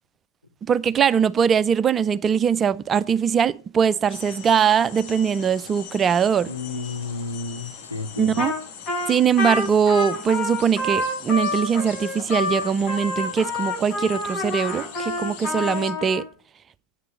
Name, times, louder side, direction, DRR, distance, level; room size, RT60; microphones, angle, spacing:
voice 1, 0.7-6.5 8.2-8.5 9.1-16.2, right 7 dB, 25° right, 0.5 m, -21 dB
Singapore Botanic Gardens - Ambiance, 4.1-15.9, left 7 dB, 45° left, 2.1 m, -41 dB
voice 2, 6.5-8.5, left 3 dB, 85° left, 1.1 m, -32 dB
Trumpet, 8.4-8.6 8.9-16.2, left 2 dB, 30° left, 5.6 m, -28 dB
8.8 x 6.8 x 7.4 m
figure-of-eight pair, 90°, 0 cm